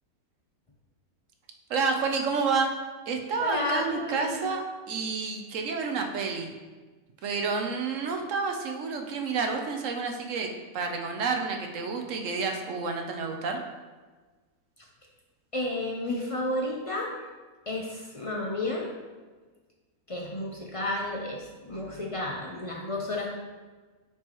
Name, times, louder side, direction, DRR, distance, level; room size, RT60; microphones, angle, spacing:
voice 1, 1.7-2.7 3.1-6.5 7.2-13.6, right 4 dB, 65° right, 3 dB, 1.0 m, -29 dB
voice 2, 3.4-4.5 15.5-17.2 17.7-18.9 20.1-23.3, left 2 dB, 40° left, -1 dB, 0.4 m, -32 dB
8.8 x 4.6 x 3.0 m, 1.3 s
omnidirectional pair, 1.5 m